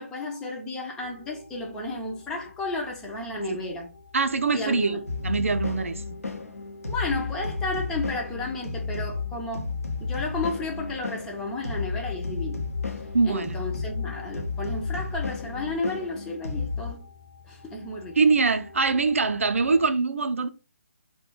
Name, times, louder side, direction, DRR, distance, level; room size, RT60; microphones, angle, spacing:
voice 1, 0.0-3.9 4.5-5.0 6.9-9.7 10.0-12.6 13.2-17.1 17.5-18.2, left 2 dB, 10° left, 0.3 m, -32 dB
sound 1, 1.0-19.9, left 2 dB, 55° left, 0.9 m, -49 dB
voice 2, 4.1-5.0 5.2-6.2 13.1-13.7 18.2-20.5, right 4 dB, 70° right, 0.3 m, -23 dB
sound 2, 5.1-16.9, left 4 dB, 85° left, 0.6 m, -32 dB
2.2 x 2.1 x 3.0 m
figure-of-eight pair, 140°, 8 cm